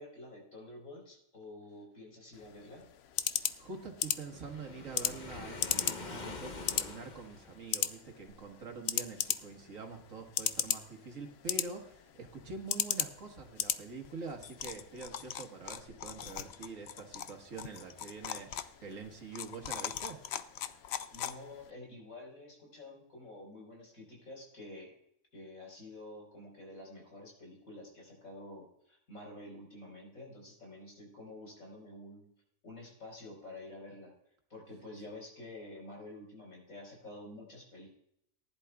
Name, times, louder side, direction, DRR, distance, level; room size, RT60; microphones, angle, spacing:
voice 1, 0.0-2.9 21.1-24.9 25.3-32.3 32.6-34.1 34.5-37.9, left 1 dB, 80° left, 0 dB, 4.7 m, -49 dB
sound 1, 2.3-21.7, left 10 dB, 65° left, 0.7 m, -38 dB
voice 2, 3.6-20.2, right 4 dB, 70° right, 3 dB, 1.8 m, -45 dB
Waves surf, 4.3-7.8, left 3 dB, 35° left, 1.0 m, -45 dB
19.0 x 11.0 x 2.3 m, 0.74 s
omnidirectional pair, 1.4 m